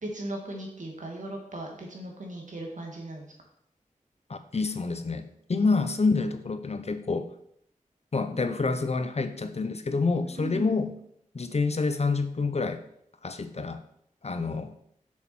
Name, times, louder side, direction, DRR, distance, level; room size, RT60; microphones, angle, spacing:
voice 1, 0.0-3.3 5.6-5.8 10.2-10.8, right 1 dB, 65° right, 0 dB, 2.1 m, -38 dB
voice 2, 4.3-7.3 8.1-10.9 11.3-12.8 13.2-13.8 14.2-14.7, left 4 dB, 50° left, 9 dB, 0.7 m, -28 dB
7.0 x 6.3 x 4.5 m, 0.72 s
wide cardioid pair, 70°, 14 cm